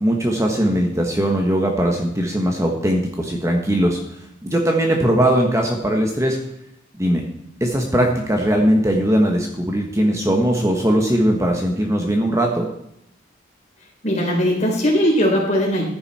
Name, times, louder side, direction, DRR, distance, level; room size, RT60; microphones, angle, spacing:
voice 1, 0.0-4.0 4.4-6.4 7.0-7.2 7.6-12.7, equal, 15° right, 2 dB, 1.4 m, -19 dB
voice 2, 14.0-15.8, equal, 35° left, -1 dB, 4.0 m, -19 dB
14.5 x 9.7 x 4.3 m, 0.77 s
head